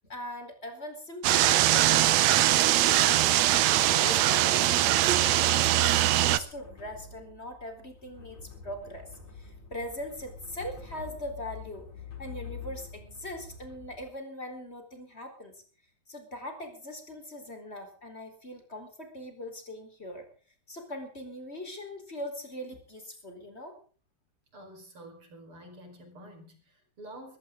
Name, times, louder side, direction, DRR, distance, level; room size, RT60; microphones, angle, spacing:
voice 1, 0.1-5.9 6.2-9.1 9.3-11.9 12.2-15.6 16.1-20.2 20.7-23.8, left 1 dB, 20° left, 5 dB, 4.2 m, -41 dB
sound 1, 1.2-6.4, right 13 dB, 70° right, 2.0 m, -22 dB
sound 2, 5.8-14.1, left 5 dB, 65° left, 7.4 m, -46 dB
voice 2, 24.5-27.4, right 1 dB, 45° right, 5 dB, 5.7 m, -48 dB
20.5 x 16.5 x 3.8 m, 0.40 s
omnidirectional pair, 3.4 m